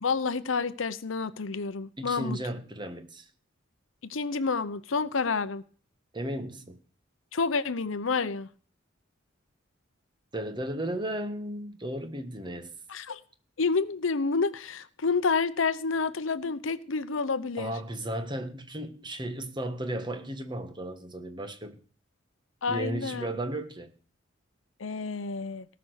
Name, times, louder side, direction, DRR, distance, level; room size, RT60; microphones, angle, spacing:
voice 1, 0.0-2.4 4.1-5.6 7.3-8.5 12.9-13.2 13.6-17.7 22.6-23.3 24.8-25.7, left 4 dB, 85° left, 0.8 m, -29 dB
voice 2, 2.0-3.3 6.1-6.8 10.3-12.7 17.6-21.8 22.7-23.9, right 1 dB, 25° right, 1.5 m, -35 dB
18.5 x 6.1 x 6.5 m
head